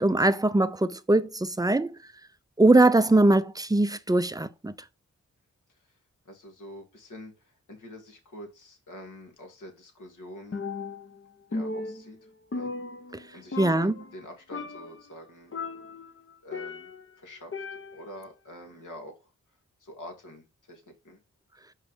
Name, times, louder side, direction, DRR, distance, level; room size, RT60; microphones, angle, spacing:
voice 1, 0.0-2.0 2.6-4.7 13.6-13.9, right 2 dB, 10° right, 0.6 m, -21 dB
voice 2, 6.3-10.6 11.5-12.2 12.5-12.7 13.3-15.5 16.4-16.9 17.2-19.3 19.8-21.2, equal, 70° left, 2.2 m, -46 dB
Percussion, 10.5-11.2 11.5-13.3 13.5-14.2 14.5-15.0 15.5-17.1 17.5-18.2, left 3 dB, 40° left, 1.0 m, -36 dB
5.4 x 3.6 x 5.4 m
cardioid pair, 40°, 33 cm